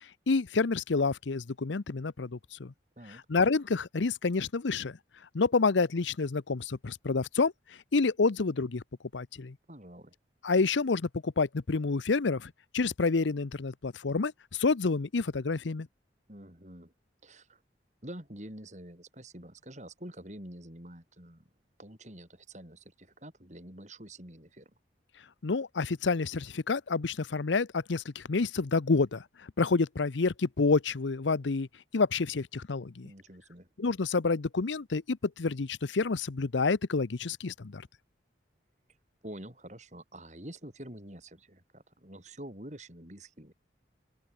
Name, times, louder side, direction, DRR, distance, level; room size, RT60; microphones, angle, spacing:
voice 1, 0.3-2.7 3.3-5.0 5.3-7.5 7.9-8.8 9.1-9.6 10.4-15.9 25.4-29.2 29.6-31.7 31.9-33.1 33.8-37.9, left 4 dB, 85° left, 0.7 m, -28 dB
voice 2, 9.7-10.1 16.3-16.9 17.2-17.6 18.0-21.4 21.8-24.7 33.0-33.7 39.2-43.5, right 1 dB, 40° right, 6.1 m, -47 dB
open air
head